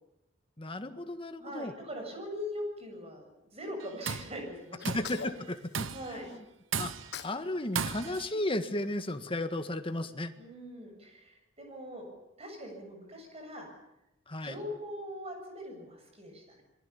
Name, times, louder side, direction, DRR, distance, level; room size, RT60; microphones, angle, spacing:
voice 1, 0.6-1.7 4.8-5.2 5.5-6.4 6.8-6.9 7.2-10.3 14.3-14.6, left 1 dB, 30° left, 8 dB, 1.7 m, -34 dB
voice 2, 1.4-3.3 3.5-4.8 5.9-6.3 10.4-12.1 12.4-13.7 14.4-16.6, equal, 35° right, 3 dB, 7.5 m, -41 dB
Tools, 3.8-4.4 4.8-5.2 5.7-6.2 6.7-7.2 7.8-8.3, right 6 dB, 80° right, 1.1 m, -35 dB
Sneeze, 4.8-6.4 6.9-7.5 7.7-9.2, left 6 dB, 60° left, 1.4 m, -46 dB
27.0 x 22.0 x 7.2 m, 0.89 s
head